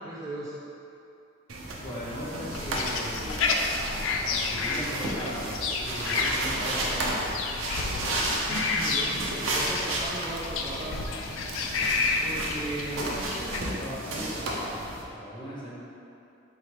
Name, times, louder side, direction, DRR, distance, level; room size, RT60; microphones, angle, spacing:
voice 1, 0.0-0.6 8.6-11.0, right 1 dB, 15° right, -6 dB, 0.3 m, -37 dB
sound 1, 1.5-15.0, right 1 dB, 70° right, 0.5 m, -33 dB
voice 2, 1.8-3.4 4.5-5.5 5.9-7.3 12.2-15.8, equal, 25° left, -8 dB, 0.8 m, -37 dB
sound 2, 2.5-13.6, left 4 dB, 80° left, 0.3 m, -31 dB
3.9 x 3.2 x 2.9 m, 2.7 s
head